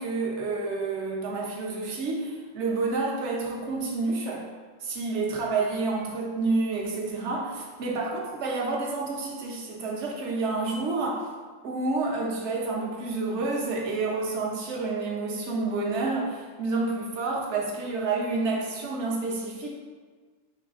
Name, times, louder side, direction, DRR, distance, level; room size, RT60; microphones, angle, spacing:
voice 1, 0.0-4.5 4.8-11.3 11.6-19.7, right 3 dB, 65° right, -2 dB, 1.0 m, -29 dB
4.7 x 3.3 x 2.4 m, 1.5 s
omnidirectional pair, 1.3 m